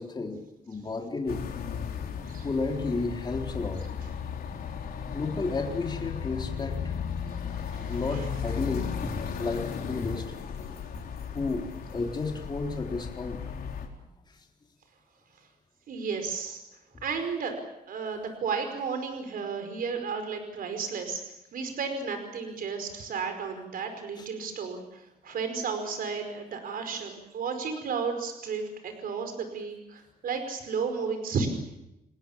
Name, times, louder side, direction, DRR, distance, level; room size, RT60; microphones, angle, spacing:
voice 1, 0.0-1.5 2.4-3.8 5.1-6.9 7.9-10.3 10.9-11.0 11.3-13.4 24.2-24.3, left 3 dB, 30° left, 2 dB, 3.8 m, -32 dB
sound 1, 1.3-13.9, left 7 dB, 80° left, 4.3 m, -35 dB
voice 2, 7.7-8.3 15.9-16.6 17.0-17.5 17.9-21.2 21.5-31.5, right 5 dB, 70° right, 7 dB, 5.0 m, -33 dB
30.0 x 19.5 x 7.4 m, 0.88 s
cardioid pair, 135°, 16 cm